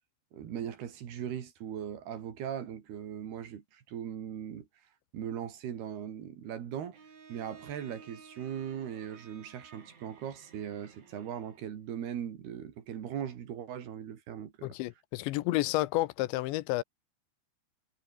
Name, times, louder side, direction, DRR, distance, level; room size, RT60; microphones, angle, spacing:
voice 1, 0.3-4.7 5.1-7.0 7.3-14.8, right 9 dB, 60° right, 4.2 m, -39 dB
Bowed string instrument, 6.9-11.8, right 5 dB, 80° right, 9.2 m, -55 dB
voice 2, 14.6-16.8, left 18 dB, 85° left, 3.0 m, -30 dB
omnidirectional pair, 5.3 m